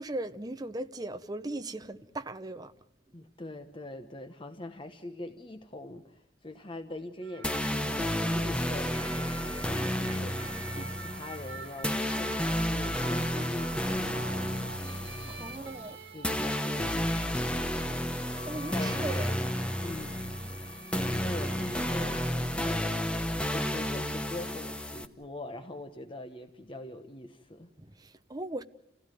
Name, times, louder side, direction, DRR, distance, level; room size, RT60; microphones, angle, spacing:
voice 1, 0.0-2.7 15.3-16.0 18.5-19.3 27.8-28.6, right 2 dB, 20° right, 0.8 m, -38 dB
voice 2, 3.1-14.4 15.4-15.6 16.1-17.6 18.5-19.5 19.8-20.2 21.1-27.7, left 1 dB, 25° left, 1.1 m, -43 dB
sound 1, 7.2-22.3, right 4 dB, 65° right, 1.7 m, -46 dB
sound 2, 7.4-25.1, equal, 5° left, 1.0 m, -32 dB
29.0 x 16.5 x 9.2 m
head